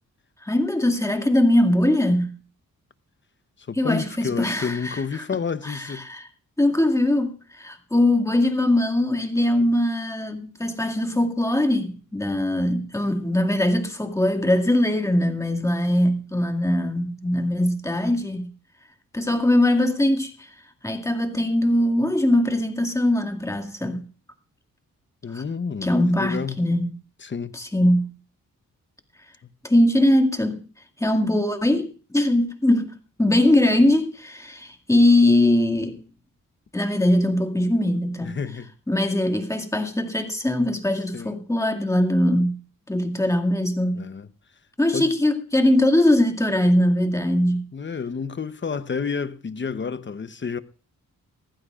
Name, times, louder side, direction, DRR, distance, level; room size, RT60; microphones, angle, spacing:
voice 1, 0.4-2.4 3.7-5.2 5.6-6.3 6.6-18.5 19.1-20.5 20.8-24.1 25.3-25.4 25.8-27.0 27.5-28.2 29.6-30.7 31.0-36.0 36.7-38.4 38.9-42.6 42.9-44.0 44.8-47.6, left 1 dB, 10° left, 2.2 m, -21 dB
voice 2, 3.7-6.1 25.2-25.9 26.2-26.6 27.2-27.5 29.4-29.5 38.2-38.7 41.1-41.4 44.0-44.3 44.9-45.1 47.7-50.6, left 5 dB, 35° left, 0.9 m, -29 dB
22.0 x 15.0 x 2.5 m
cardioid pair, 80°, 33 cm